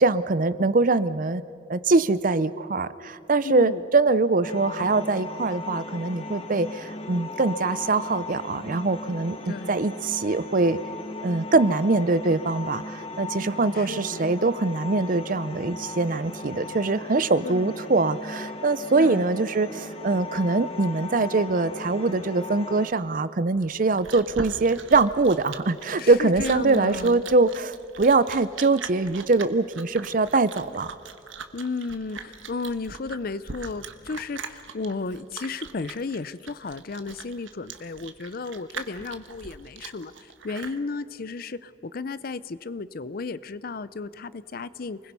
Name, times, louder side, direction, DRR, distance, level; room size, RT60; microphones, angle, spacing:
voice 1, 0.0-1.4 1.7-10.8 11.2-30.9, right 3 dB, 45° right, 15 dB, 0.6 m, -23 dB
sound 1, 4.4-22.9, left 2 dB, 30° left, 1.2 m, -37 dB
voice 2, 13.9-14.2 17.4-17.8 19.0-19.2 26.0-27.3 31.5-40.1 40.4-45.0, left 3 dB, 50° left, 17 dB, 0.5 m, -33 dB
Chewing mastication, 23.6-40.8, right 5 dB, 80° right, 1.3 m, -40 dB
29.0 x 21.0 x 5.5 m, 2.6 s
head